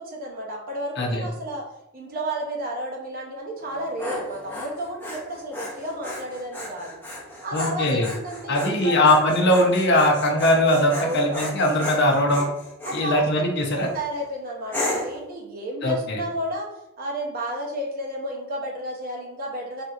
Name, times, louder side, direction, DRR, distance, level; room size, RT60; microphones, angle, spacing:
voice 1, 0.0-1.7 1.9-7.0 7.4-9.0 10.9-11.6 12.8-13.3 13.7-19.8, right 1 dB, 45° right, 0 dB, 0.7 m, -32 dB
Dog, 3.6-13.0 13.6-14.0 14.7-15.2, left 1 dB, 10° left, 0.7 m, -34 dB
voice 2, 7.5-8.1 8.5-12.5 12.9-13.9 15.8-16.2, left 1 dB, 55° left, 1 dB, 0.6 m, -20 dB
3.5 x 2.8 x 2.4 m, 0.85 s
head